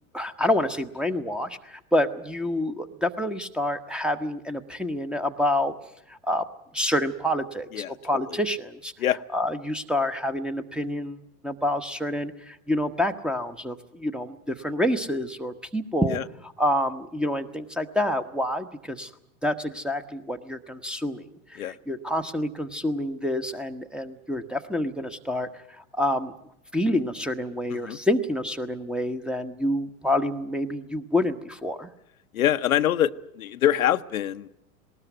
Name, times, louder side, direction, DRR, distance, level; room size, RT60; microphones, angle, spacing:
voice 1, 0.1-5.7 6.1-6.5 6.7-8.9 9.3-16.2 16.4-19.1 19.4-25.5 25.8-26.3 26.7-31.9, left 1 dB, ahead, 11 dB, 1.1 m, -28 dB
voice 2, 32.3-34.5, left 11 dB, 75° left, 10 dB, 0.8 m, -24 dB
19.5 x 19.0 x 9.3 m, 0.76 s
figure-of-eight pair, 90°, 42 cm